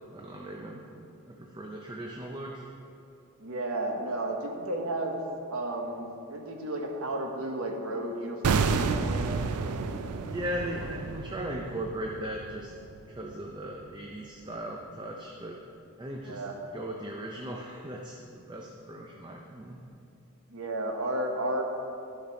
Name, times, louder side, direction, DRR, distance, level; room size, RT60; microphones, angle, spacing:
voice 1, 0.1-0.8 1.3-2.7 10.3-12.7 13.1-15.6 16.0-16.4 16.7-19.8, right 1 dB, 20° right, 0 dB, 0.5 m, -38 dB
voice 2, 3.4-5.2 5.5-9.3 10.8-10.9 13.6-13.7 16.2-16.6 19.7-19.8 20.5-21.6, right 1 dB, 70° right, 2 dB, 1.1 m, -33 dB
sound 1, 8.4-13.5 13.7-13.9, right 5 dB, 85° right, 0.4 m, -31 dB
11.5 x 5.3 x 5.2 m, 2.6 s
head